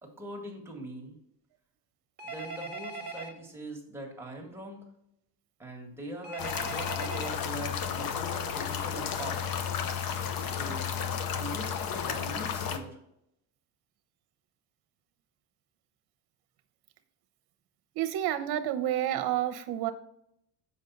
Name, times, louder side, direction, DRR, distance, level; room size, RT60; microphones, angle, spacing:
voice 1, 0.0-1.2 2.2-4.9 5.6-9.6 10.5-10.9 11.3-13.0, right 1 dB, 5° right, -1 dB, 1.8 m, -42 dB
Telephone, 2.2-3.3 6.2-7.3, right 3 dB, 25° right, 1.1 m, -39 dB
sound 1, 6.4-12.8, left 7 dB, 60° left, 0.9 m, -33 dB
voice 2, 18.0-19.9, right 12 dB, 65° right, 8 dB, 0.9 m, -29 dB
7.3 x 5.5 x 4.0 m, 0.78 s
cardioid pair, 135°, 41 cm